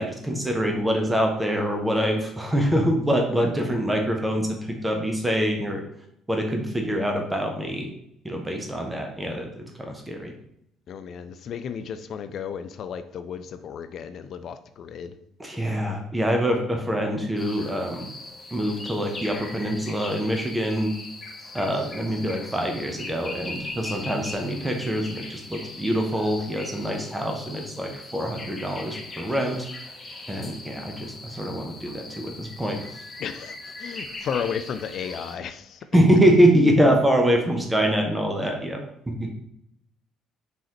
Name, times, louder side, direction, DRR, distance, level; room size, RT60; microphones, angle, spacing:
voice 1, 0.0-5.8 6.3-7.9 8.2-9.5 9.9-10.3 15.4-18.1 18.5-20.9 21.5-29.7 30.3-32.9 35.9-38.8 39.2-39.3, equal, 10° right, 2 dB, 0.8 m, -24 dB
voice 2, 10.9-15.2 33.2-35.8, left 7 dB, 50° left, 10 dB, 0.4 m, -33 dB
sound 1, 17.4-35.4, left 2 dB, 25° left, 0.9 m, -40 dB
5.4 x 3.2 x 2.9 m, 0.77 s
figure-of-eight pair, 50°, 0 cm